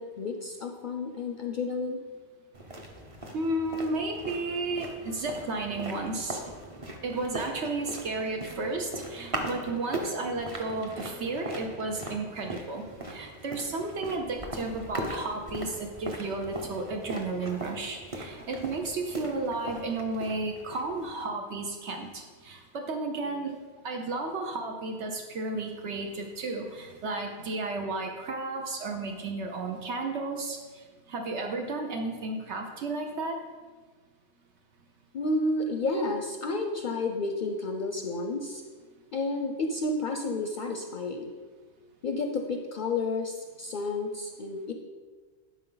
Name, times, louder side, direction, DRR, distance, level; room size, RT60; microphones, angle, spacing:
voice 1, 0.0-2.0 35.1-38.6 39.1-41.3 42.0-44.7, left 2 dB, 55° left, 4 dB, 0.6 m, -31 dB
sound 1, 2.5-21.1, right 1 dB, 30° right, 1.0 m, -40 dB
voice 2, 3.3-6.4 7.0-23.5 23.8-30.6 31.1-33.4, right 2 dB, 75° right, 2 dB, 1.1 m, -33 dB
12.0 x 4.8 x 3.9 m, 1.5 s
omnidirectional pair, 1.2 m